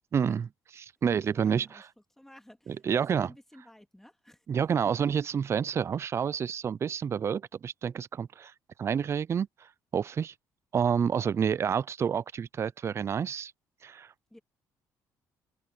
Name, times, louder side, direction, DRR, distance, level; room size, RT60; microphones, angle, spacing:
voice 1, 0.1-0.4 0.8-1.8 2.9-3.3 4.5-8.5 8.8-10.3 10.7-13.5 13.8-14.1, right 7 dB, 40° right, 0.5 m, -29 dB
voice 2, 1.2-1.9 2.1-4.5 14.3-14.4, left 1 dB, 5° left, 2.3 m, -54 dB
open air
cardioid pair, 85°, 7 cm